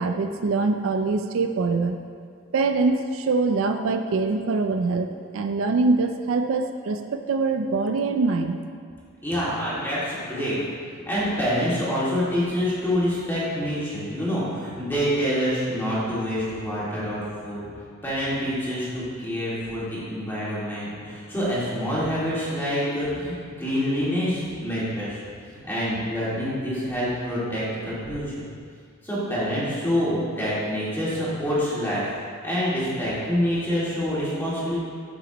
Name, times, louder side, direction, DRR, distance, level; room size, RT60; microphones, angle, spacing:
voice 1, 0.0-2.0 2.5-5.1 5.3-8.6, right 3 dB, 70° right, 7 dB, 0.4 m, -23 dB
voice 2, 9.2-10.6 11.1-17.6 18.0-25.2 25.5-28.5 29.0-32.0 32.4-34.8, equal, 10° left, -9 dB, 2.2 m, -26 dB
13.0 x 5.9 x 3.0 m, 2.2 s
head